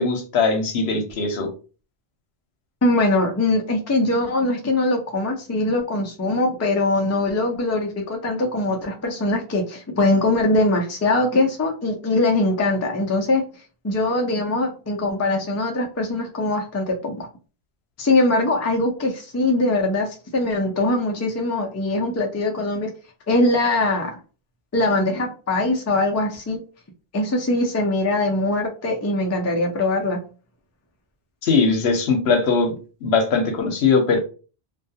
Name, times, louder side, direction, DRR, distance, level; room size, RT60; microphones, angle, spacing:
voice 1, 0.0-1.5 31.4-32.7 33.0-34.2, left 4 dB, 80° left, 5 dB, 0.9 m, -20 dB
voice 2, 2.8-13.4 13.8-17.3 18.0-22.9 23.3-24.2 24.7-26.6 27.1-30.2, left 2 dB, 25° left, 1 dB, 0.3 m, -22 dB
2.4 x 2.3 x 2.7 m, 0.36 s
omnidirectional pair, 1.1 m